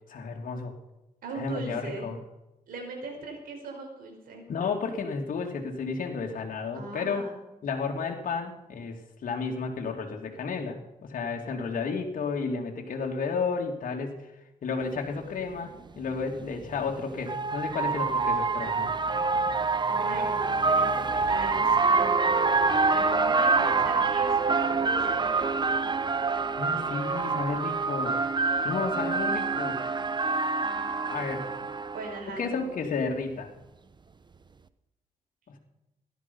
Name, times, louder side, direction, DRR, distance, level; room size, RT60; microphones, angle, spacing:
voice 1, 0.1-0.7 1.3-2.2 4.5-7.2 7.6-14.2 14.6-18.9 26.6-28.2 28.6-29.8 31.1-31.5 32.3-33.5 35.5-35.6, left 4 dB, 70° left, 1 dB, 2.6 m, -32 dB
voice 2, 1.2-2.1 2.7-4.4 6.7-7.4 19.9-22.3 22.9-25.6 31.9-32.8, right 3 dB, 80° right, 2 dB, 5.1 m, -39 dB
sound 1, 15.1-15.2 16.6-32.2, right 4 dB, 30° right, 0.9 m, -26 dB
16.5 x 12.5 x 5.6 m, 0.93 s
cardioid pair, 85°, 15 cm